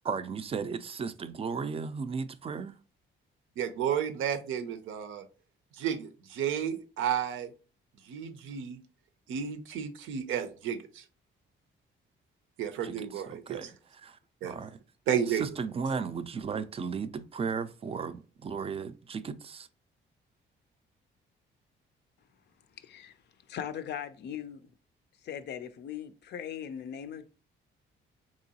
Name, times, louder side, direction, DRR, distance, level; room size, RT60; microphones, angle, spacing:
voice 1, 0.0-2.8 12.8-13.7 14.0-14.8 15.4-19.7, right 5 dB, 30° right, 0.3 m, -35 dB
voice 2, 3.6-5.2 5.8-7.5 8.0-8.8 9.3-11.0 12.6-13.7 14.4-14.5 15.1-15.4, right 8 dB, 80° right, 0.5 m, -32 dB
voice 3, 22.8-23.2 23.5-24.7 25.2-27.3, left 9 dB, 60° left, 0.4 m, -39 dB
3.7 x 3.0 x 2.7 m
cardioid pair, 90°, 20 cm